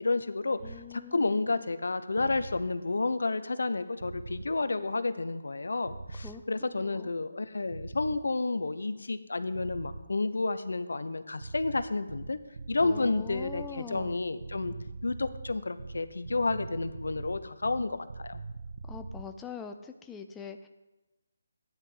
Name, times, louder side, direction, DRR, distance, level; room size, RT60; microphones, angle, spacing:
voice 1, 0.0-12.4 12.7-14.7 15.0-18.4, left 3 dB, 80° left, 11 dB, 0.9 m, -31 dB
voice 2, 0.6-1.7 6.1-7.1 12.8-14.2 18.9-20.7, left 6 dB, 5° left, 5 dB, 0.5 m, -44 dB
sound 1, 0.6-0.8 2.2-2.6 4.0-4.5 5.8-6.4 7.7-8.2 9.5-10.1 11.4-19.3, right 3 dB, 65° right, 0.8 m, -42 dB
15.0 x 10.0 x 3.9 m, 1.1 s
hypercardioid pair, 165°, 0 cm